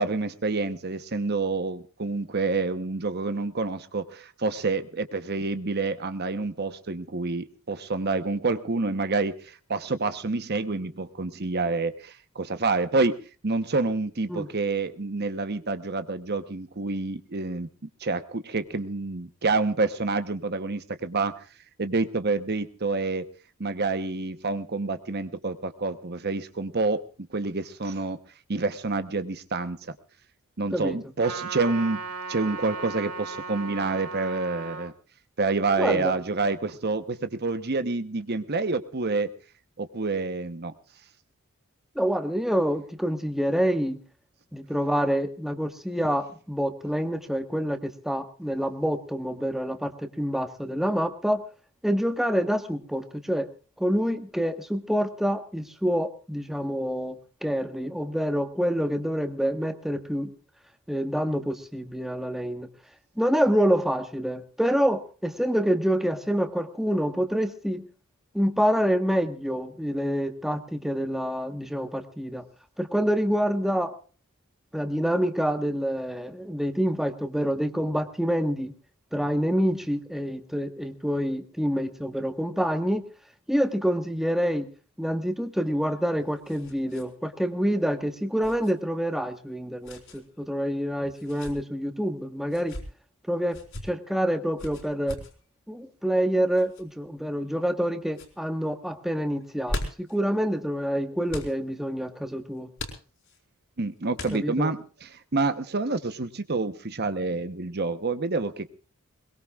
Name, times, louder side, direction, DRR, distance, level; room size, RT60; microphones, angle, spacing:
voice 1, 0.0-13.2 13.4-17.7 18.0-21.4 21.8-23.2 23.6-27.0 27.3-28.2 28.5-30.0 30.6-32.0 32.3-34.9 35.4-39.3 39.8-40.7 103.8-108.7, right 3 dB, 45° right, 10 dB, 1.0 m, -28 dB
Trumpet, 31.2-34.9, right 4 dB, 90° right, 2.0 m, -36 dB
voice 2, 35.8-36.1 41.9-44.0 44.5-51.4 51.8-53.5 53.8-60.3 60.9-62.7 63.2-67.8 68.3-72.4 72.8-73.9 74.7-78.7 79.1-83.0 83.5-84.7 85.0-92.8 93.3-93.6 93.8-95.2 95.7-102.7 104.3-104.7, equal, ahead, 7 dB, 1.3 m, -27 dB
sound 1, 85.7-87.1 87.4-87.5 88.4-88.7 89.8-90.2 91.1-91.6 92.4-92.9 93.5-93.8 94.6-95.3 96.5-96.8 97.5-97.8 98.1-98.3 99.4-100.2 101.3-101.5 102.8-103.4 104.1-104.7, left 1 dB, 60° left, 4.6 m, -38 dB
22.0 x 21.5 x 2.4 m, 0.39 s
head